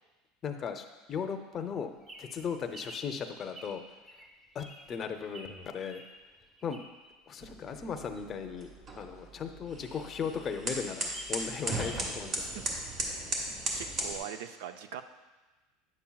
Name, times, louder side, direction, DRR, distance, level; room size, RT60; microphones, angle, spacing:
voice 1, 0.4-1.9 2.2-3.8 4.5-6.0 6.6-6.8 7.3-8.7 9.0-12.6, left 6 dB, 35° left, 6 dB, 0.6 m, -37 dB
Bird vocalization bird call bird song, 1.7-7.1 7.6-9.7 10.1-10.2 10.4-10.5 10.9-12.1 12.4-12.5, equal, 20° right, 1.3 m, -50 dB
sound 1, 7.4-14.2, right 2 dB, 40° right, 1.5 m, -37 dB
voice 2, 13.1-13.4 13.7-15.0, right 10 dB, 80° right, 10 dB, 0.4 m, -42 dB
9.5 x 7.1 x 2.3 m, 1.2 s
supercardioid pair, 120°, 0 cm